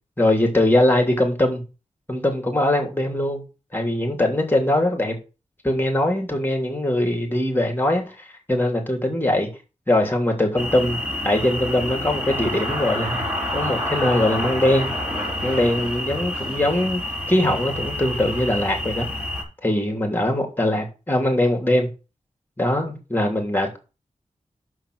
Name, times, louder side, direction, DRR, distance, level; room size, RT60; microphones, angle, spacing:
voice 1, 0.2-1.6 2.1-3.4 3.7-5.1 5.6-9.5 9.9-11.0 11.2-13.2 13.5-14.9 15.4-17.0 17.3-19.1 19.6-21.9 22.6-23.8, left 1 dB, 15° left, 3.0 m, -21 dB
sound 1, 10.6-19.4, left 1 dB, 15° right, 4.2 m, -28 dB
6.3 x 5.7 x 6.2 m
cardioid pair, 55°, 13 cm